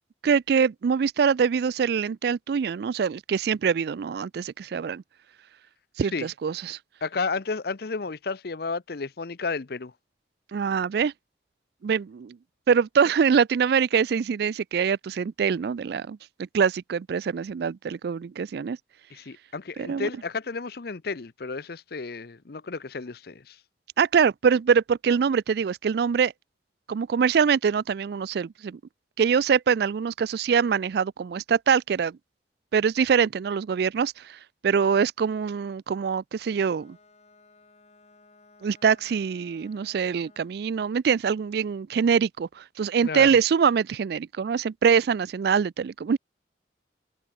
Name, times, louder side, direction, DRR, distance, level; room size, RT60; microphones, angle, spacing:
voice 1, 0.2-5.0 6.0-6.8 10.5-11.1 11.8-12.4 12.7-16.2 16.5-18.8 19.8-20.1 24.0-26.3 26.9-28.8 29.2-32.2 32.7-34.4 34.6-37.0 38.6-46.2, right 6 dB, 60° right, 0.3 m, -24 dB
voice 2, 7.0-9.9 19.1-23.6 43.0-43.3, left 4 dB, 55° left, 0.7 m, -32 dB
Bowed string instrument, 36.4-40.6, left 3 dB, 35° left, 6.0 m, -57 dB
head